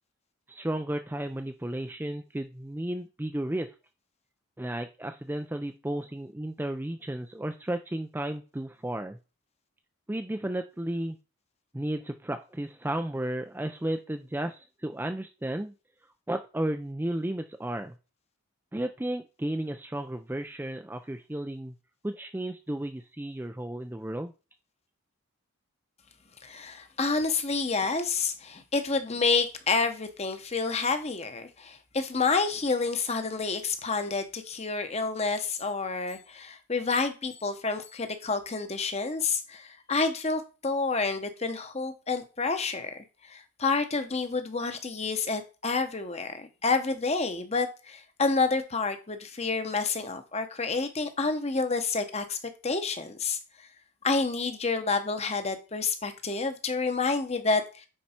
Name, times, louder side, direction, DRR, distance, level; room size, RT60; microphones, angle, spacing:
voice 1, 0.5-3.7 4.6-9.2 10.1-11.2 11.7-15.7 16.3-17.9 18.7-21.7 22.0-24.3, right 1 dB, 10° right, 0.4 m, -33 dB
voice 2, 26.4-52.4 52.6-53.4 54.0-57.9, left 4 dB, 30° left, 0.9 m, -29 dB
9.5 x 4.6 x 4.4 m
head